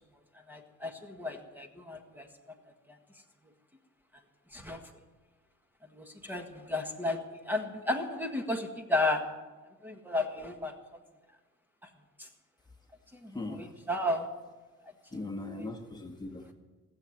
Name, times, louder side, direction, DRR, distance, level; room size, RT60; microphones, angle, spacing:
voice 1, 0.5-2.3 4.5-4.8 5.9-9.3 9.8-10.7 12.2-12.3 13.2-14.3 15.5-15.7, left 2 dB, 5° right, 4 dB, 1.6 m, -33 dB
voice 2, 13.3-13.7 15.1-16.5, left 2 dB, 15° left, 3 dB, 1.6 m, -39 dB
18.5 x 7.5 x 9.2 m, 1.3 s
cardioid pair, 90°, 30 cm